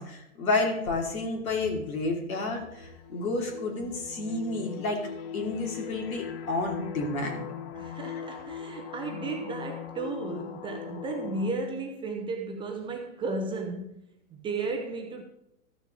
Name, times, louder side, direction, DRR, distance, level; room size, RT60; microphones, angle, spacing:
voice 1, 0.0-5.0 5.3-7.4, left 3 dB, 80° left, 3.1 m, -30 dB
sound 1, 2.8-11.5, left 8 dB, 45° left, 1.1 m, -40 dB
voice 2, 7.7-14.0 14.3-15.2, right 3 dB, 10° right, 0.6 m, -34 dB
14.0 x 6.4 x 3.8 m
hypercardioid pair, 135°, 42 cm